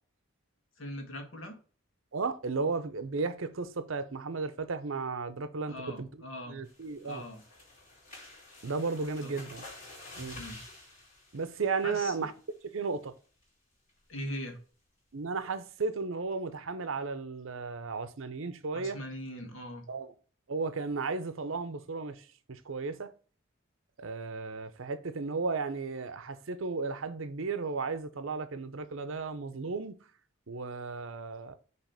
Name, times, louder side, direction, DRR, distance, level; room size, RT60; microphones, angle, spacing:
voice 1, 0.8-1.6 5.7-6.6 7.0-7.4 9.2-9.3 10.3-10.6 11.8-12.3 14.1-14.6 18.7-19.9, left 1 dB, 75° left, 1.6 m, -41 dB
voice 2, 2.1-6.1 6.5-7.2 8.6-9.6 10.2-10.4 11.3-12.3 12.7-13.1 15.1-19.0 19.9-20.1 20.5-23.1 24.0-30.0 30.5-31.5, right 4 dB, 75° right, 0.7 m, -34 dB
sound 1, 6.6-12.4 12.8-13.1 13.4-13.5 13.9-14.2, left 2 dB, 35° left, 2.8 m, -50 dB
6.0 x 3.1 x 5.6 m
head